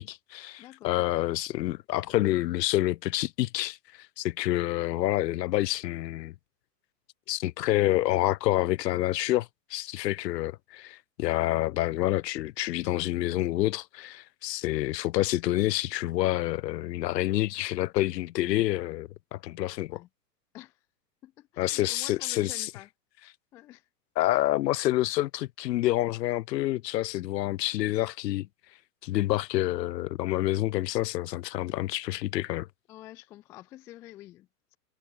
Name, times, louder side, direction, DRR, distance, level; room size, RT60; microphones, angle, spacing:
voice 1, 0.0-6.3 7.3-20.0 21.6-22.7 24.2-28.5 29.0-32.7, left 16 dB, 85° left, 0.6 m, -28 dB
voice 2, 0.6-1.0 19.9-20.1 20.5-20.8 21.2-22.9 23.5-23.9 32.9-34.8, left 15 dB, 5° left, 0.3 m, -48 dB
hypercardioid pair, 140°, 48 cm